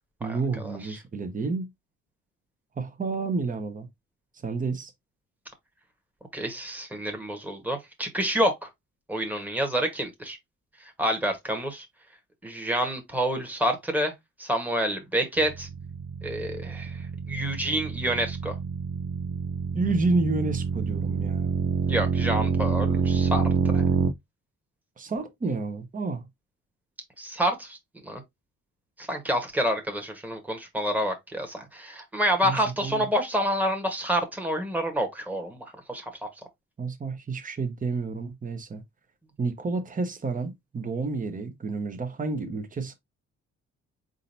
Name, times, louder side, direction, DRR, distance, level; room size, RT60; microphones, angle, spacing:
voice 1, 0.2-1.7 2.8-3.9 4.4-4.9 19.7-21.5 25.0-26.2 32.4-33.1 36.8-38.8 39.4-42.9, right 3 dB, 25° right, 1.0 m, -30 dB
voice 2, 6.3-8.7 9.1-10.4 11.0-11.9 12.4-14.1 14.4-15.7 16.2-18.5 21.9-23.4 23.7-23.8 27.2-27.8 28.0-28.2 29.0-36.3, equal, 5° right, 1.4 m, -28 dB
sound 1, 15.4-24.1, right 6 dB, 55° right, 0.7 m, -27 dB
4.1 x 3.9 x 2.7 m
cardioid pair, 90°, 30 cm